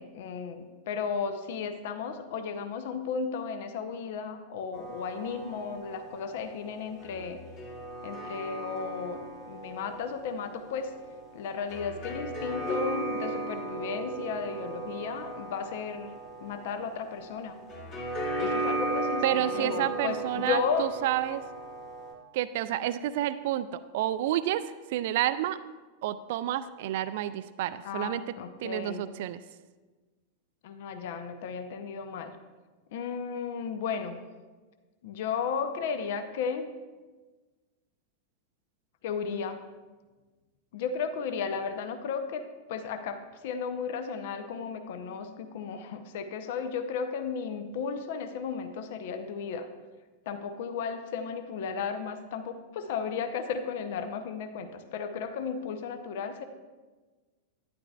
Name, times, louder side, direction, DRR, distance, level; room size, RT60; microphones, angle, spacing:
voice 1, 0.0-7.4 8.0-10.9 11.3-17.6 18.4-20.9 27.8-29.1 30.6-32.4 32.9-34.2 35.0-36.7 39.0-39.6 40.7-42.4 42.7-49.7 50.3-56.4, left 6 dB, 55° left, 9 dB, 0.6 m, -34 dB
sound 1, 4.7-22.1, right 2 dB, 40° left, 2.4 m, -36 dB
voice 2, 19.2-21.4 22.3-24.6 24.9-25.6 26.0-28.2 28.6-29.4, right 13 dB, 50° right, 13 dB, 0.3 m, -30 dB
12.0 x 10.5 x 2.4 m, 1.3 s
figure-of-eight pair, 90°, 0 cm